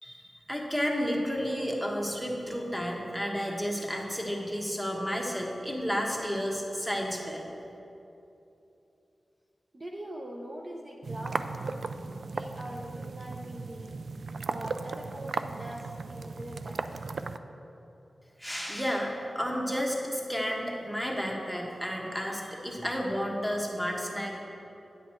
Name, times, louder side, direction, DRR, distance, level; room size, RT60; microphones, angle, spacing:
voice 1, 0.0-7.4 18.4-24.4, equal, ahead, -1 dB, 1.2 m, -32 dB
voice 2, 0.6-0.9 9.7-11.9 12.3-13.9 14.5-16.8, right 1 dB, 30° right, -2 dB, 0.7 m, -42 dB
sound 1, 11.0-17.4, right 4 dB, 75° right, 0.3 m, -36 dB
9.8 x 8.0 x 4.4 m, 2.9 s
wide cardioid pair, 105°, 0 cm